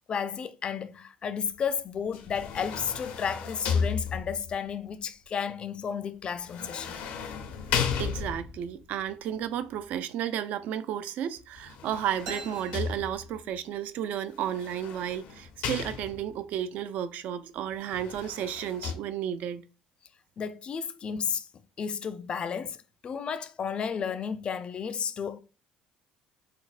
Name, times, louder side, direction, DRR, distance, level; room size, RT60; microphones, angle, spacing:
voice 1, 0.1-7.0 20.4-21.5 21.8-25.4, left 7 dB, 35° left, 0.3 m, -33 dB
sound 1, 2.1-4.6 6.4-8.7 11.6-13.4 14.4-16.4 17.8-18.9, left 6 dB, 75° left, 0.6 m, -34 dB
voice 2, 7.7-19.6, right 10 dB, 60° right, 0.3 m, -33 dB
sound 2, 12.3-14.0, right 3 dB, 85° right, 1.1 m, -44 dB
4.1 x 2.0 x 2.4 m
cardioid pair, 105°, 3 cm